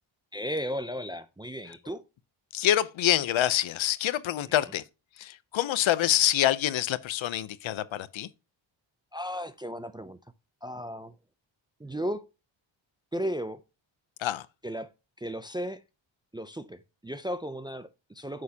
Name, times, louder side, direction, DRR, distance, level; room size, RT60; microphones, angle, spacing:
voice 1, 0.3-2.0 4.5-4.6 9.1-10.2 10.6-11.1 11.8-12.2 13.1-13.6 14.6-14.9 15.2-15.8 16.3-18.4, equal, 10° right, 0.4 m, -35 dB
voice 2, 2.5-4.8 5.2-8.3 14.2-14.5, left 12 dB, 70° left, 0.7 m, -26 dB
9.5 x 6.5 x 2.8 m
wide cardioid pair, 110°, 49 cm